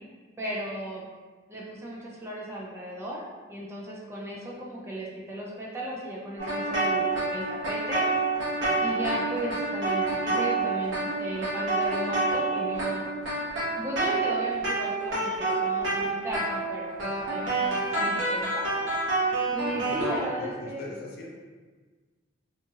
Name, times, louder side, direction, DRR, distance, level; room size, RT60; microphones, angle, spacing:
voice 1, 0.4-1.0 1.5-3.2 3.5-8.1 8.8-13.1 13.8-19.0 19.5-20.9, right 1 dB, 15° right, -4 dB, 0.3 m, -35 dB
sound 1, 6.4-20.2, right 3 dB, 75° right, 1.0 m, -28 dB
voice 2, 19.7-21.3, left 1 dB, 50° left, -1 dB, 0.4 m, -41 dB
2.8 x 2.3 x 2.7 m, 1.4 s
head